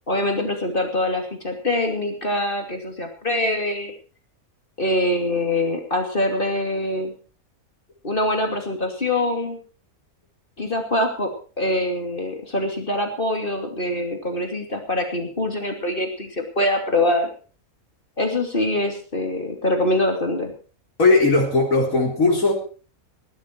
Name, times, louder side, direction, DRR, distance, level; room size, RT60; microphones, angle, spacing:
voice 1, 0.1-3.9 4.8-7.1 8.0-9.6 10.6-11.3 11.6-17.3 18.2-20.5, left 1 dB, 40° left, 4 dB, 2.9 m, -24 dB
voice 2, 21.0-22.5, left 3 dB, 70° left, 0 dB, 4.2 m, -18 dB
18.5 x 12.0 x 4.6 m, 0.38 s
omnidirectional pair, 1.5 m